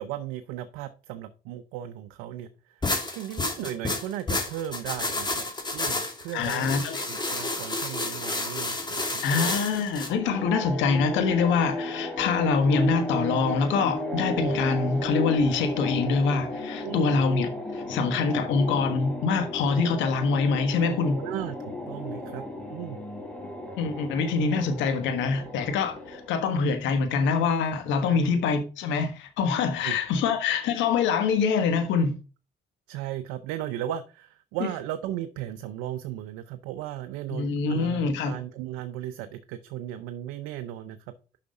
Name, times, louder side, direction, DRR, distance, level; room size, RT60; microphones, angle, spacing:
voice 1, 0.0-2.5 3.1-5.4 5.7-9.6 16.8-17.3 21.2-22.4 22.7-23.0 28.1-28.3 29.8-30.0 32.9-41.1, right 12 dB, 90° right, 0.6 m, -36 dB
sound 1, 2.8-10.1, left 2 dB, 25° left, 2.4 m, -30 dB
voice 2, 6.3-7.0 9.2-21.2 23.8-32.2 34.6-34.7 37.3-38.4, left 5 dB, 80° left, 1.4 m, -25 dB
sound 2, 10.1-26.7, left 1 dB, 5° left, 3.0 m, -34 dB
6.8 x 5.8 x 5.3 m
supercardioid pair, 65°, 19 cm